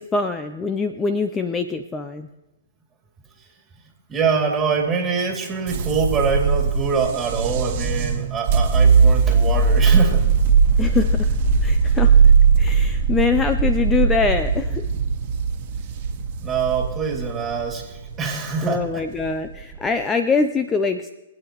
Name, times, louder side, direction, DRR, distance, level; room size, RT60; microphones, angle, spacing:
voice 1, 0.0-2.3 10.8-11.4 11.6-12.3 12.6-14.9 18.6-21.1, left 4 dB, 15° left, 9 dB, 0.5 m, -23 dB
voice 2, 4.1-10.2 16.4-19.0, right 5 dB, 20° right, 0 dB, 2.6 m, -24 dB
sound 1, 5.7-19.9, right 5 dB, 45° right, 1.4 m, -19 dB
25.0 x 8.8 x 3.0 m, 0.96 s
hypercardioid pair, 125°, 0 cm